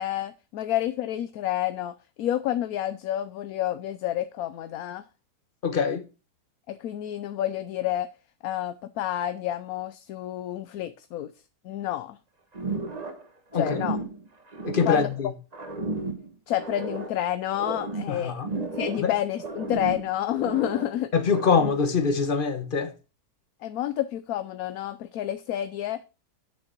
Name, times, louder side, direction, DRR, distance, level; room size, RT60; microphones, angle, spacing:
voice 1, 0.0-5.0 6.7-8.1 8.4-11.3 11.6-12.2 13.5-14.0 14.8-15.1 16.5-18.3 18.7-21.1 23.6-26.0, left 12 dB, 70° left, 1.1 m, -29 dB
voice 2, 5.6-6.0 13.5-13.8 14.6-15.3 18.1-18.5 19.0-19.1 21.1-22.9, left 5 dB, 35° left, 1.1 m, -24 dB
sound 1, 12.5-13.3 13.5-15.2 15.5-17.2 17.5-19.1 19.4-20.9 21.3-21.9, right 2 dB, 25° right, 1.4 m, -33 dB
9.7 x 6.4 x 4.4 m
omnidirectional pair, 1.7 m